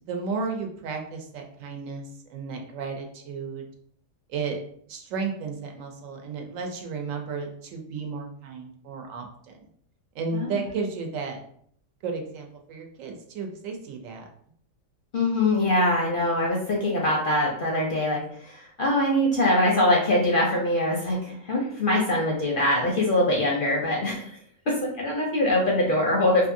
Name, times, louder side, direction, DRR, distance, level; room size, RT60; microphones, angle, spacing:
voice 1, 0.1-3.6 4.3-4.6 4.9-9.6 10.1-11.4 12.0-14.2, right 4 dB, 80° right, 3 dB, 1.0 m, -33 dB
voice 2, 15.1-24.3 24.7-26.5, left 1 dB, 60° left, -2 dB, 0.6 m, -23 dB
2.7 x 2.5 x 2.5 m, 0.63 s
omnidirectional pair, 1.4 m